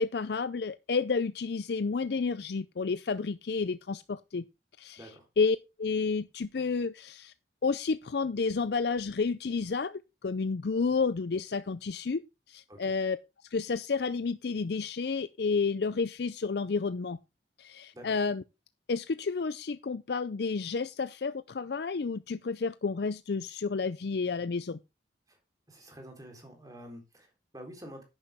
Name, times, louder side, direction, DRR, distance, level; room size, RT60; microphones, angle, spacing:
voice 1, 0.0-4.4 4.8-5.1 5.4-7.3 7.6-12.2 12.5-13.2 13.5-17.2 17.6-18.4 18.9-24.8, left 4 dB, 60° left, 0.5 m, -31 dB
voice 2, 25.7-28.0, equal, 20° right, 3.8 m, -48 dB
11.0 x 9.8 x 3.5 m
head